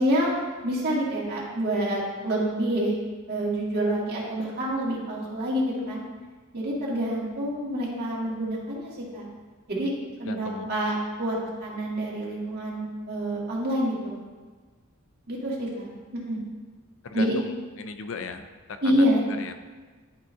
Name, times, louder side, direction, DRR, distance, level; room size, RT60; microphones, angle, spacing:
voice 1, 0.0-3.0 3.3-6.0 6.5-9.2 9.7-9.9 10.2-14.2 15.3-16.4 17.1-17.3 18.8-19.2, equal, 50° right, -5 dB, 1.9 m, -27 dB
voice 2, 10.3-10.7 17.0-19.5, left 5 dB, 65° left, 8 dB, 0.5 m, -37 dB
11.0 x 4.8 x 2.7 m, 1.4 s
head